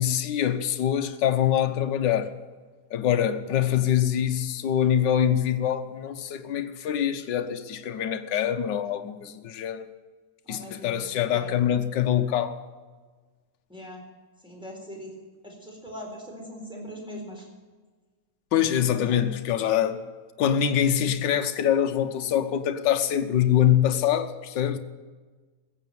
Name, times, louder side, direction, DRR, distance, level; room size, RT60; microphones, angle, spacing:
voice 1, 0.0-2.3 2.9-9.8 10.5-12.6 18.5-20.0 20.4-24.8, left 10 dB, 70° left, 1.5 m, -24 dB
voice 2, 3.5-3.9 10.4-11.5 13.7-14.0 14.4-15.1 15.4-17.5 19.0-19.2, equal, ahead, 4.0 m, -41 dB
15.0 x 8.3 x 9.2 m
omnidirectional pair, 2.1 m